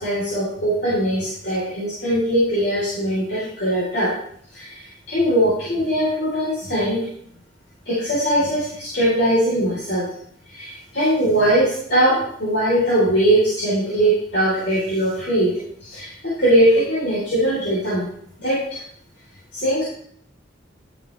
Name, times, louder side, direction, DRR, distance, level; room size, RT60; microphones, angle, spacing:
voice 1, 0.0-4.1 4.5-7.0 7.9-10.1 10.5-18.1 18.4-18.8 19.5-19.8, right 1 dB, 65° left, -9 dB, 4.2 m, -21 dB
12.0 x 8.1 x 3.5 m, 0.64 s
head